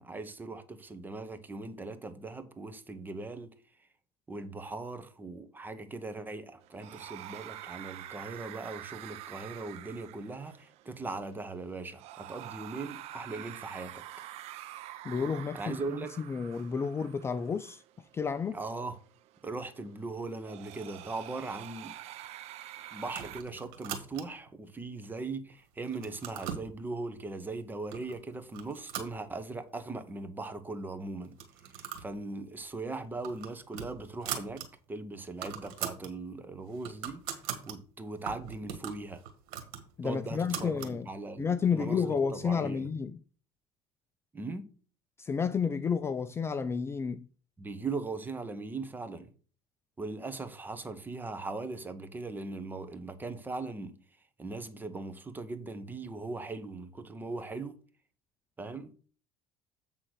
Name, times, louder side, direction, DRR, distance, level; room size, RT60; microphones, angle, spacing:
voice 1, 0.0-3.5 4.3-14.0 15.5-16.2 18.5-19.0 19.4-21.9 22.9-31.4 31.7-34.6 34.9-37.2 37.6-39.2 40.0-42.9 44.3-44.7 47.6-49.3 50.0-54.0 54.4-57.8 58.6-58.9, right 3 dB, 15° right, 0.9 m, -39 dB
sound 1, 6.6-23.4, right 14 dB, 60° right, 0.6 m, -47 dB
voice 2, 15.0-17.8 18.1-18.6 40.0-41.1 41.4-43.2 45.2-47.3, left 6 dB, 20° left, 0.4 m, -31 dB
sound 2, 23.1-24.5 25.0-25.5 25.8-26.7 27.4-27.5 27.9-28.2 28.5-29.8 30.1-30.2 30.4-30.5 31.3-32.1 32.4-32.6 33.0-34.7 35.0-35.1 35.3-36.1 36.5-37.8 38.3-41.0, right 9 dB, 90° right, 1.6 m, -41 dB
7.9 x 3.8 x 6.2 m
cardioid pair, 120°, 12 cm